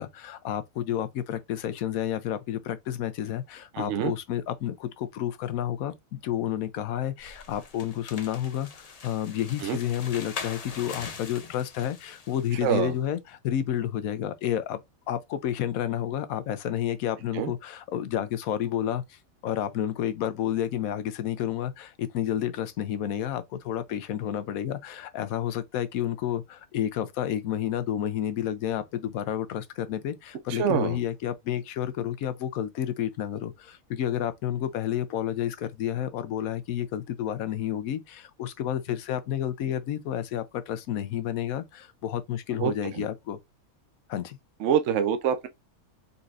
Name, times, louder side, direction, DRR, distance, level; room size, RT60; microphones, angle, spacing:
voice 1, 0.0-14.8 15.1-43.4 44.1-44.4, left 11 dB, 80° left, 1.0 m, -30 dB
voice 2, 3.7-4.1 9.6-9.8 12.6-12.9 17.3-17.5 30.5-31.0 42.6-43.1 44.6-45.5, right 8 dB, 65° right, 0.9 m, -26 dB
sound 1, 7.2-12.8, left 5 dB, 55° left, 0.4 m, -42 dB
4.1 x 3.9 x 2.4 m
omnidirectional pair, 1.5 m